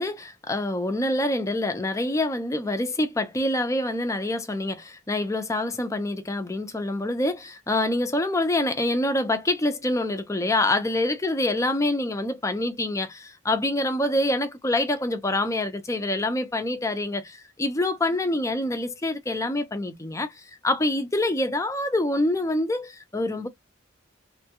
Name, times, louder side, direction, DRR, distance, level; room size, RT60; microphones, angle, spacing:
voice 1, 0.0-23.5, left 1 dB, 15° left, 0.5 m, -26 dB
3.3 x 2.3 x 2.7 m
head